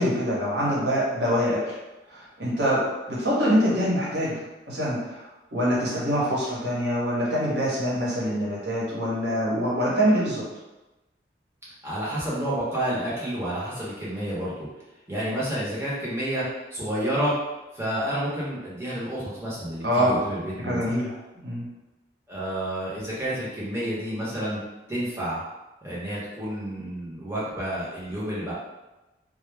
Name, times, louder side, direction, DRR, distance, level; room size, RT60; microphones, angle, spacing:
voice 1, 0.0-1.8 2.1-2.8 3.1-4.4 4.7-10.4 19.8-20.1 20.6-21.1 21.4-21.7, equal, 80° right, -6 dB, 1.0 m, -25 dB
voice 2, 11.8-14.7 15.1-16.5 16.7-17.3 17.7-20.9 22.3-24.6 24.9-25.4 25.8-28.5, right 1 dB, 15° right, -8 dB, 0.7 m, -30 dB
2.1 x 2.0 x 3.3 m, 1.0 s
head